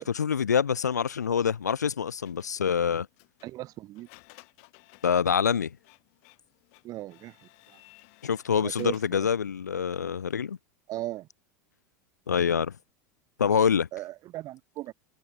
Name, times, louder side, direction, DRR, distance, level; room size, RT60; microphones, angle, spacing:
voice 1, 0.0-3.1 5.0-5.7 8.2-10.6 12.3-12.7 13.4-13.9, left 7 dB, 85° left, 0.6 m, -26 dB
Printer, 2.2-9.5, left 29 dB, 60° left, 3.4 m, -58 dB
voice 2, 3.4-4.1 6.8-7.3 8.6-9.3 10.9-11.3 13.9-14.9, right 16 dB, 45° right, 0.6 m, -37 dB
hypercardioid pair, 85°, 9 cm